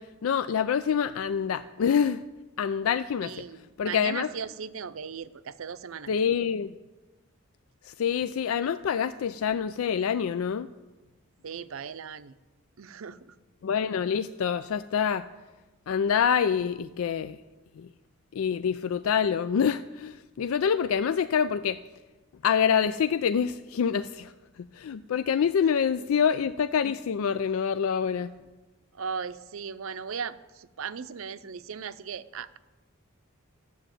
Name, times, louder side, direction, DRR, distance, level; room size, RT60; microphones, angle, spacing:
voice 1, 0.0-2.2 2.6-3.4 3.8-4.3 6.1-6.7 7.8-10.7 13.6-15.3 15.9-17.4 17.8-17.9 18.3-21.8 22.4-28.3, left 7 dB, 75° left, 13 dB, 0.4 m, -26 dB
voice 2, 3.2-6.1 11.4-12.4 12.8-13.2 29.0-32.6, right 6 dB, 75° right, 13 dB, 0.6 m, -37 dB
12.5 x 7.9 x 9.0 m, 1.2 s
head